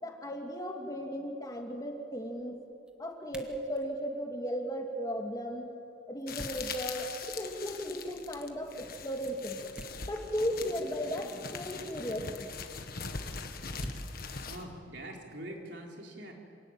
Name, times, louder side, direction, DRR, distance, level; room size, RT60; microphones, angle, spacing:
voice 1, 0.0-2.6 3.0-5.7 6.1-9.6 10.0-12.6, equal, 20° left, 2 dB, 2.4 m, -36 dB
sound 1, 0.8-15.7, equal, 5° right, 1.7 m, -52 dB
sound 2, 6.3-14.6, left 5 dB, 55° left, 1.6 m, -42 dB
voice 2, 14.4-16.3, right 1 dB, 70° right, 0 dB, 3.9 m, -44 dB
27.0 x 18.0 x 9.1 m, 2.5 s
head